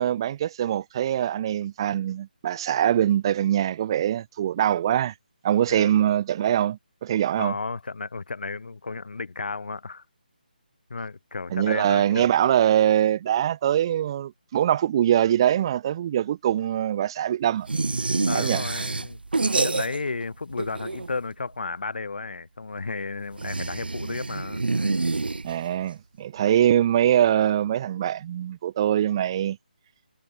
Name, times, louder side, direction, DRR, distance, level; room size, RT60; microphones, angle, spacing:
voice 1, 0.0-5.1 5.4-7.5 11.5-17.7 18.3-18.6 25.4-29.6, right 11 dB, 30° right, 0.7 m, -23 dB
voice 2, 7.4-10.0 10.9-12.3 18.3-19.2 19.5-24.6, left 4 dB, 70° left, 1.4 m, -33 dB
sound 1, 17.7-20.3 20.5-21.3 23.3-25.8, right 3 dB, 85° right, 0.9 m, -27 dB
figure-of-eight pair, 155°, 5 cm